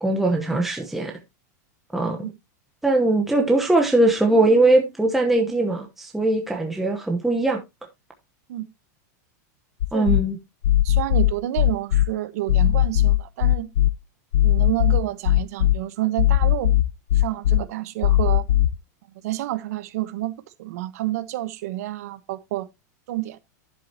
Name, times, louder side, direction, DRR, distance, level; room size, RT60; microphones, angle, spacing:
voice 1, 0.0-1.1 1.9-2.3 2.8-7.6 9.9-10.4, right 2 dB, ahead, 1.0 m, -20 dB
sound 1, 9.8-10.2 10.6-12.1 12.5-13.9 14.3-15.8 16.2-17.6 18.0-18.7, left 14 dB, 85° left, 0.6 m, -18 dB
voice 2, 10.8-13.7 14.4-16.7 17.1-18.5 19.2-22.7 23.1-23.4, right 15 dB, 60° right, 1.1 m, -29 dB
11.0 x 7.6 x 2.8 m
supercardioid pair, 165°, 9 cm